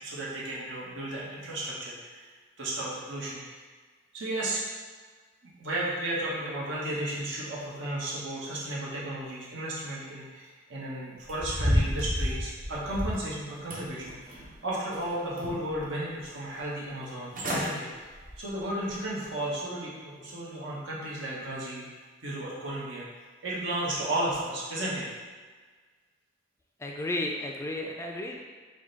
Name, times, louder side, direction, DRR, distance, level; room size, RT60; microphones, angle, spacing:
voice 1, 0.0-2.2 2.6-3.6 4.1-4.6 5.4-18.1 18.4-21.9 22.2-23.0 23.4-25.1, right 1 dB, 80° right, -6 dB, 1.2 m, -34 dB
sound 1, 11.2-13.3 13.7-14.5 14.9-15.8 16.2-16.3 17.0-17.1 17.3-17.7 18.1-18.4 18.9-19.0, equal, 45° right, 0.7 m, -30 dB
voice 2, 26.8-28.4, left 1 dB, 15° left, 0 dB, 0.3 m, -33 dB
4.9 x 2.3 x 4.0 m, 1.4 s
head